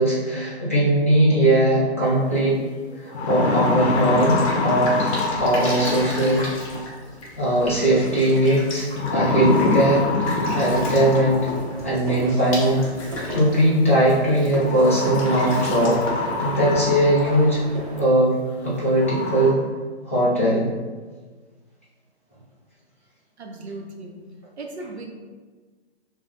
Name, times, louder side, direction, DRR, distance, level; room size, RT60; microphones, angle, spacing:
voice 1, 0.0-2.6 3.0-6.5 7.4-10.1 10.5-11.5 11.8-12.8 13.3-17.6 18.0-18.3 18.6-19.6 20.0-20.7, right 1 dB, 15° left, -10 dB, 0.3 m, -20 dB
sound 1, 2.4-2.5 2.9-6.3 7.8-8.2 9.0-11.8 13.0-13.1 14.6-17.5 18.0-18.1 18.6-18.7 19.0-19.5, left 3 dB, 75° left, 0.6 m, -25 dB
Drip, 3.6-17.6, left 1 dB, 30° left, 0.9 m, -37 dB
sound 2, 10.4-18.1, left 1 dB, 35° right, 0.9 m, -36 dB
voice 2, 23.4-24.3 24.6-25.1, right 2 dB, 75° right, 2 dB, 0.8 m, -36 dB
6.0 x 2.3 x 2.3 m, 1.4 s
hypercardioid pair, 155°, 33 cm